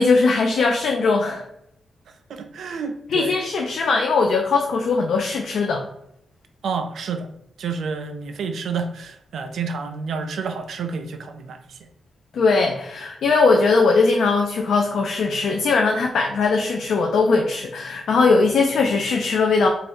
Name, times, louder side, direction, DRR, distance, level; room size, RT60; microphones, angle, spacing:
voice 1, 0.0-1.5 3.1-5.8 12.3-19.7, left 4 dB, 80° left, 1 dB, 0.3 m, -19 dB
voice 2, 2.3-3.4 6.6-7.3 7.6-11.8, right 5 dB, 80° right, 7 dB, 0.3 m, -29 dB
2.6 x 2.3 x 3.3 m, 0.78 s
cardioid pair, 110°, 0 cm